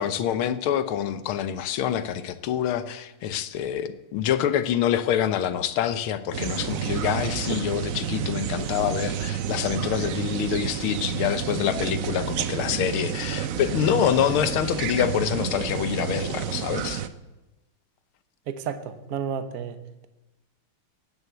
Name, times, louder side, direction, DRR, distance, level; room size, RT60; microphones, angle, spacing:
voice 1, 0.0-17.0, left 9 dB, 80° left, 12 dB, 1.7 m, -26 dB
sound 1, 6.3-17.1, right 9 dB, 75° right, 0.7 m, -30 dB
voice 2, 18.5-19.8, right 7 dB, 50° right, 10 dB, 1.3 m, -31 dB
16.0 x 9.8 x 8.0 m, 1.0 s
omnidirectional pair, 2.3 m